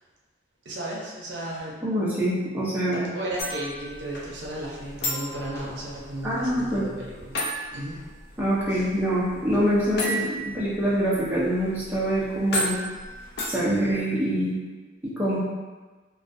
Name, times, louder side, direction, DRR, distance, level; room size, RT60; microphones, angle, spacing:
voice 1, 0.7-1.8 2.9-7.4 7.7-8.0 8.7-8.8, right 1 dB, 65° right, -4 dB, 0.5 m, -34 dB
voice 2, 1.8-3.0 6.2-6.9 8.4-12.8 13.5-14.6 15.0-15.4, equal, 10° right, -8 dB, 0.4 m, -25 dB
sound 1, 3.4-14.0, equal, 55° left, 0.4 m, -35 dB
2.3 x 2.3 x 2.5 m, 1.3 s
head